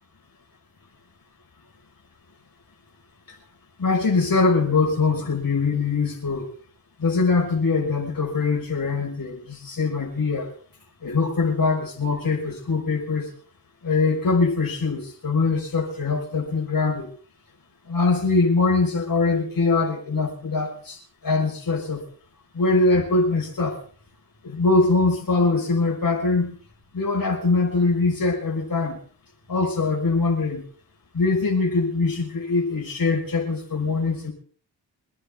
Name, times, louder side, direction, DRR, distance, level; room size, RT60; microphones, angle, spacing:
voice 1, 3.8-6.4 7.0-10.5 11.0-13.3 13.8-17.1 17.9-21.0 21.2-22.0 22.5-23.8 24.4-26.5 26.9-29.0 29.5-30.6 31.1-34.3, left 3 dB, 50° left, 1 dB, 5.6 m, -22 dB
25.5 x 10.0 x 3.8 m, 0.43 s
supercardioid pair, 40°, 43 cm